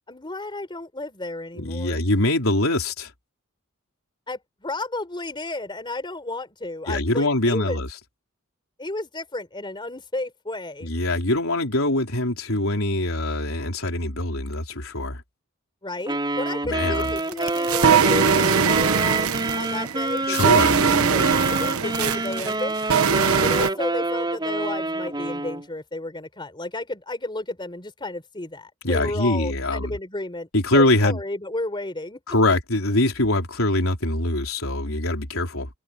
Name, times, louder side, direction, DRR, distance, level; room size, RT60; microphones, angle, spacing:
voice 1, 0.1-2.1 4.3-7.9 8.8-10.9 15.8-18.3 18.6-22.8 23.4-32.2, left 2 dB, 20° left, 4.2 m, -32 dB
voice 2, 1.6-3.1 6.9-7.9 10.8-15.2 16.6-17.1 20.3-20.8 28.8-29.9 30.5-31.2 32.3-35.7, left 1 dB, 70° left, 4.6 m, -23 dB
Wind instrument woodwind instrument, 16.1-25.7, right 2 dB, 20° right, 5.1 m, -27 dB
sound 1, 17.0-23.7, right 6 dB, 90° right, 1.1 m, -21 dB
head